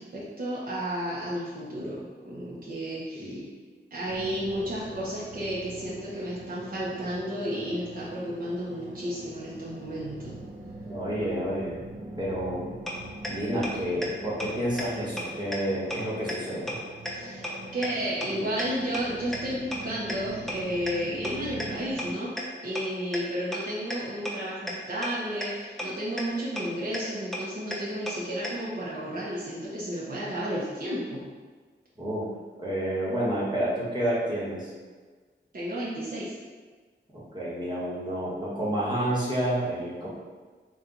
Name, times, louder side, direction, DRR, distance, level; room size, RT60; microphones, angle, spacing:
voice 1, 0.0-3.4 3.9-10.4 17.1-22.3 22.6-31.2 35.5-36.3, equal, 50° right, -8 dB, 0.9 m, -32 dB
sound 1, 4.1-22.1, right 2 dB, 75° right, 0.7 m, -43 dB
voice 2, 10.9-11.8 12.2-12.8 13.3-16.7 32.0-32.2 32.6-34.7 37.1-40.1, right 1 dB, 25° right, -8 dB, 1.3 m, -29 dB
sound 2, 12.9-13.0 13.2-13.3 13.6-13.7 14.0-14.1 14.4-14.5 14.8-14.9 15.2-15.3 15.5-15.6 15.9-16.0 16.3-16.4 16.7-16.8 17.1-17.2 17.4-17.5 17.8-17.9 18.2-18.3 18.6-18.7 18.9-19.0 19.3-19.4 19.7-19.8 20.1-20.2 20.5-20.6 20.9-21.0 21.2-21.3 21.6-21.7 22.0-22.1 22.4-22.5 22.8-22.9 23.1-23.2 23.5-23.6 23.9-24.0 24.3-24.4 24.7-24.8 25.0-25.1 25.4-25.5 25.8-25.9 26.2-26.3 26.6-26.7 26.9-27.0 27.3-27.4 27.7-27.8 28.1-28.2 28.4-28.5, left 1 dB, ahead, 0.6 m, -32 dB
4.3 x 2.5 x 3.8 m, 1.4 s
wide cardioid pair, 105°, 19 cm